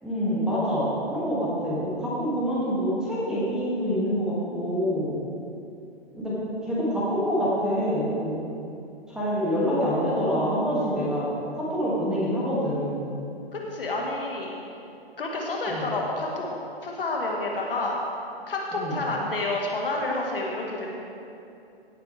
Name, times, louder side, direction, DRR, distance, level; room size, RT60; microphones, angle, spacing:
voice 1, 0.0-5.2 6.1-6.3 6.6-8.4 9.1-11.3 11.6-13.1 15.7-15.9 18.7-19.0, equal, ahead, -9 dB, 2.4 m, -26 dB
voice 2, 13.5-14.5 15.2-16.5 16.8-17.9 18.5-20.9, left 2 dB, 60° left, -1 dB, 1.9 m, -29 dB
16.5 x 7.9 x 3.5 m, 2.7 s
figure-of-eight pair, 125°, 31 cm